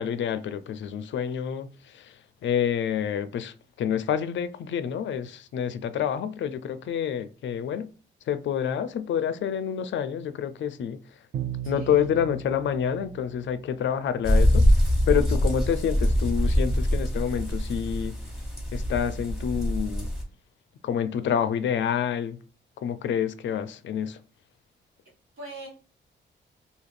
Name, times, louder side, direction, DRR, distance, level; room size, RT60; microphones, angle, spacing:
voice 1, 0.0-7.9 8.3-11.0 11.7-18.2 18.7-20.1 20.8-22.4 22.8-24.2, left 8 dB, 70° left, 0.4 m, -28 dB
Bowed string instrument, 11.3-14.1, right 10 dB, 50° right, 0.4 m, -37 dB
voice 2, 11.6-12.1 25.4-25.7, right 2 dB, 90° right, 1.6 m, -41 dB
sound 1, 14.2-20.2, equal, ahead, 1.2 m, -24 dB
2.7 x 2.4 x 3.1 m
cardioid pair, 85°, 20 cm